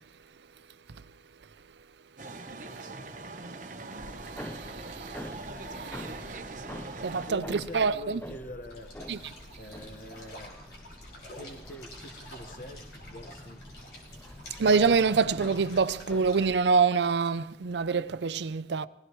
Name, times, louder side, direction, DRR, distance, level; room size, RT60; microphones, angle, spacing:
sound 1, 2.2-7.3, right 3 dB, 45° right, 1.1 m, -41 dB
sound 2, 4.0-16.6, left 1 dB, 10° left, 0.5 m, -46 dB
voice 1, 4.4-5.1 5.7-6.1 7.0-8.2 9.1-9.3 14.6-18.9, right 5 dB, 75° right, 0.5 m, -26 dB
voice 2, 7.1-8.9 9.6-10.6 11.3-13.6, left 1 dB, 50° left, 1.4 m, -44 dB
sound 3, 8.7-16.5, equal, 70° left, 5.5 m, -48 dB
22.5 x 17.0 x 3.1 m
head